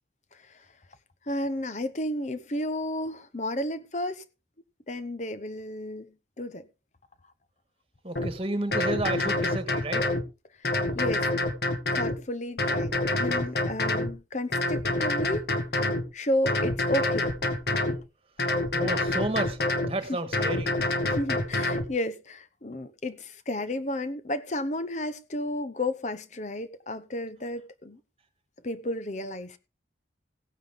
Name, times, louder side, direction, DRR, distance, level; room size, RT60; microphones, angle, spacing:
voice 1, 0.3-0.7 1.3-4.2 4.9-6.7 10.6-11.3 11.9-12.9 13.2-15.5 16.1-17.3 20.1-20.2 21.0-28.0 28.6-29.6, left 1 dB, 40° left, 0.9 m, -32 dB
voice 2, 8.0-10.1 13.2-13.3 18.7-19.6 19.8-20.8, right 2 dB, 30° right, 1.6 m, -31 dB
sound 1, 8.2-8.3 8.7-10.2 10.6-12.2 12.6-14.1 14.5-16.0 16.5-18.0 18.4-19.9 20.3-21.9, left 2 dB, 60° left, 1.8 m, -27 dB
16.5 x 9.4 x 3.6 m
head